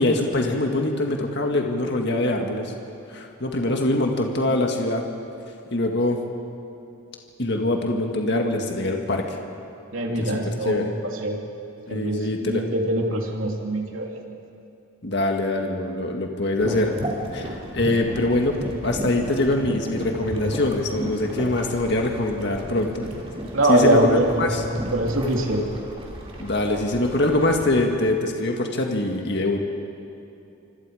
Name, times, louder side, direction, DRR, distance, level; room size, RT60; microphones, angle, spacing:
voice 1, 0.0-2.7 3.1-5.1 5.7-6.2 7.4-9.4 10.2-10.4 10.7-10.9 11.9-12.6 15.0-16.9 17.3-23.1 23.7-24.6 26.4-29.6, left 2 dB, 55° left, 2 dB, 1.9 m, -23 dB
voice 2, 9.9-10.9 11.2-11.4 11.9-14.2 23.0-23.2 23.5-25.8, right 1 dB, 70° right, 0 dB, 3.0 m, -23 dB
sound 1, 16.6-27.9, equal, 30° right, 3.1 m, -34 dB
26.0 x 26.0 x 5.0 m, 2.7 s
head